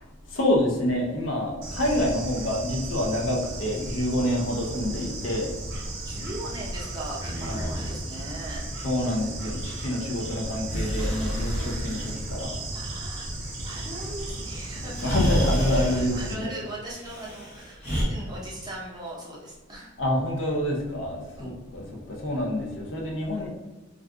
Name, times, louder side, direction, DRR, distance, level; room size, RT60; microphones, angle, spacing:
voice 1, 0.3-5.5 7.4-7.8 8.8-12.6 15.0-16.5 20.0-23.5, left 1 dB, 70° left, -1 dB, 0.6 m, -27 dB
Bird / Insect, 1.6-16.3, right 2 dB, 55° right, 0.8 m, -35 dB
voice 2, 6.0-8.7 11.0-11.8 12.7-15.3 15.7-19.9 21.4-21.5, right 1 dB, 20° right, -5 dB, 0.7 m, -40 dB
Breathing, 7.1-8.0 10.7-12.2 14.3-14.4 14.9-16.0 16.9-18.0, equal, 40° left, 1.2 m, -29 dB
2.5 x 2.3 x 3.5 m, 1.2 s
head